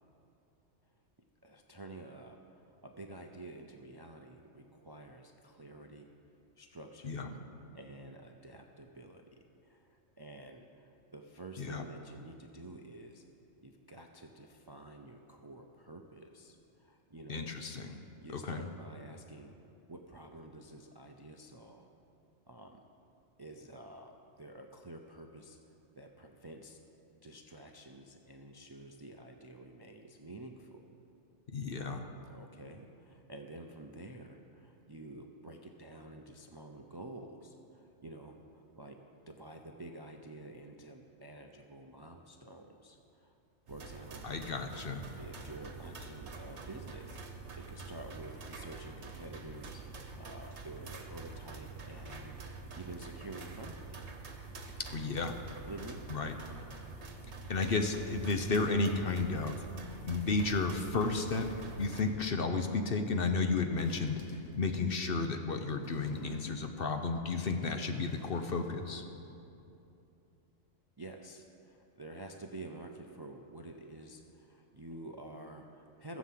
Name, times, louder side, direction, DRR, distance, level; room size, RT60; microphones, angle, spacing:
voice 1, 1.4-2.4 2.8-6.1 6.6-7.2 7.7-9.9 10.2-13.2 13.6-17.5 18.2-19.6 19.9-21.9 22.5-22.8 23.4-25.6 25.9-26.8 27.2-30.9 32.3-43.0 43.2-43.3 43.7-44.5 45.2-47.2 47.6-52.3 52.8-54.0 55.7-56.0 71.0-76.2, right 2 dB, 30° right, 3 dB, 0.4 m, -49 dB
voice 2, 17.3-18.0 18.3-18.6 31.5-32.1 44.2-45.0 54.9-55.4 56.1-56.3 57.5-59.7 60.0-61.5 61.8-64.2 64.6-69.0, left 4 dB, 50° left, 6 dB, 0.9 m, -32 dB
sound 1, 43.7-62.0, right 4 dB, 60° right, 1.4 m, -46 dB
sound 2, 61.2-62.3 63.6-65.0 65.8-66.9 67.3-69.0 69.3-69.4, left 3 dB, 80° left, 1.6 m, -51 dB
15.5 x 7.3 x 7.5 m, 2.7 s
omnidirectional pair, 1.3 m